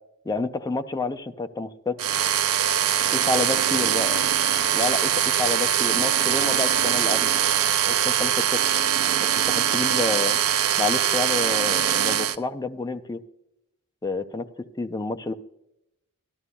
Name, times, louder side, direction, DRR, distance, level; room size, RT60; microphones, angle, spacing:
voice 1, 0.3-2.0 3.1-4.3 4.7-7.3 7.9-8.6 9.2-10.4 10.8-13.2 14.0-15.3, left 3 dB, 15° left, 8 dB, 0.5 m, -29 dB
sound 1, 2.0-12.4, right 10 dB, 65° right, 0.4 m, -22 dB
12.5 x 12.5 x 2.3 m, 0.85 s
head